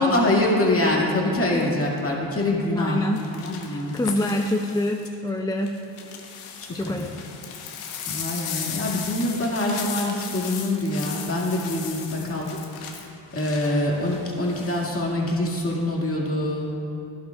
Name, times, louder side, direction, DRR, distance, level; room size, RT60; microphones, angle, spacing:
voice 1, 0.0-3.0 3.3-4.0 6.6-7.0 8.0-16.7, left 1 dB, 25° left, -2 dB, 2.1 m, -25 dB
sound 1, 1.5-1.8 3.2-5.1 5.6-14.9 15.3-15.7, left 7 dB, 85° left, 1.2 m, -37 dB
voice 2, 2.8-3.2 3.7-5.8 6.7-7.2, left 1 dB, 10° left, 2 dB, 0.4 m, -26 dB
12.5 x 11.5 x 2.4 m, 2.8 s
supercardioid pair, 75°, 49 cm